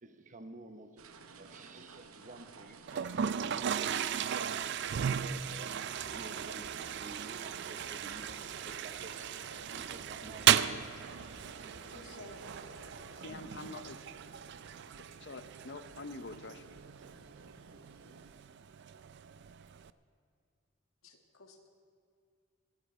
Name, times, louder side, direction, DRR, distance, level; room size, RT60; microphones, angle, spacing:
voice 1, 0.0-3.8 4.3-9.4 9.7-11.2, right 2 dB, 35° right, 0.9 m, -52 dB
sound 1, 1.0-18.3, right 4 dB, 90° right, 0.8 m, -57 dB
Toilet flush, 2.9-19.9, right 9 dB, 55° right, 0.4 m, -36 dB
sound 2, 5.9-13.2, right 1 dB, 75° right, 1.8 m, -53 dB
voice 2, 11.9-12.6 13.3-13.4 21.0-21.7, left 2 dB, 80° left, 1.7 m, -53 dB
voice 3, 13.2-14.0 15.2-16.6, left 3 dB, 55° left, 0.8 m, -45 dB
26.5 x 9.9 x 4.3 m
head